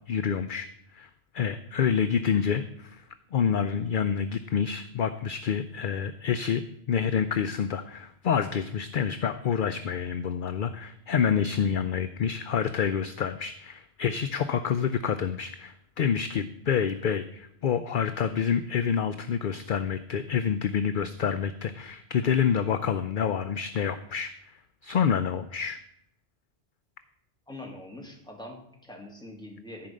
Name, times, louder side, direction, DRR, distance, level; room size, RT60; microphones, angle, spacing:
voice 1, 0.1-3.0 3.3-6.6 6.9-25.8, left 7 dB, 55° left, 10 dB, 0.7 m, -28 dB
voice 2, 27.5-29.9, left 1 dB, 5° left, 0 dB, 2.3 m, -43 dB
14.0 x 5.2 x 7.6 m, 0.74 s
omnidirectional pair, 1.1 m